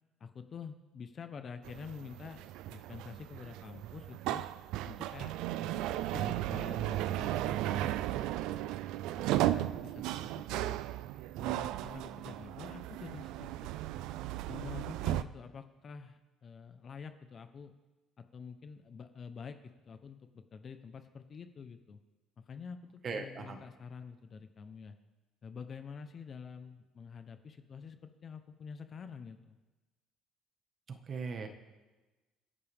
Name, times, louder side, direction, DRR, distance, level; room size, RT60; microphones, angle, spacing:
voice 1, 0.2-4.4 4.8-7.9 8.3-8.4 9.1-10.8 11.4-13.7 14.5-17.7 18.3-22.0 22.5-25.0 25.4-29.6, left 6 dB, 35° left, 8 dB, 0.9 m, -47 dB
sound 1, 1.6-15.2, right 14 dB, 80° right, 0.5 m, -35 dB
voice 2, 23.0-23.6 30.9-31.5, right 4 dB, 35° right, 6 dB, 1.6 m, -39 dB
28.0 x 10.5 x 3.6 m, 1.2 s
cardioid pair, 145°, 0 cm